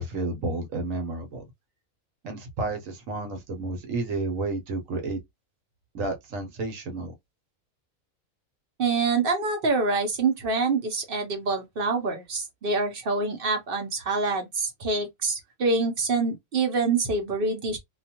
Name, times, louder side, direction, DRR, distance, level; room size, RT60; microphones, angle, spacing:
voice 1, 0.0-1.4 2.2-5.2 5.9-7.1, right 2 dB, 70° right, 1.1 m, -31 dB
voice 2, 8.8-17.8, right 3 dB, 50° right, 0.7 m, -26 dB
2.4 x 2.3 x 2.8 m
omnidirectional pair, 1.5 m